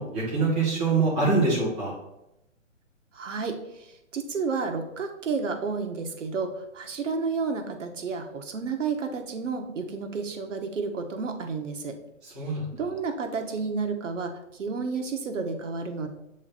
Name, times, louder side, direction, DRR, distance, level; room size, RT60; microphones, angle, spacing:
voice 1, 0.0-1.9 12.2-12.6, right 3 dB, 5° right, -11 dB, 0.4 m, -24 dB
voice 2, 3.1-12.0 12.4-12.5 12.7-16.1, right 4 dB, 70° right, 5 dB, 1.1 m, -31 dB
7.2 x 3.2 x 4.1 m, 0.87 s
hypercardioid pair, 150°, 39 cm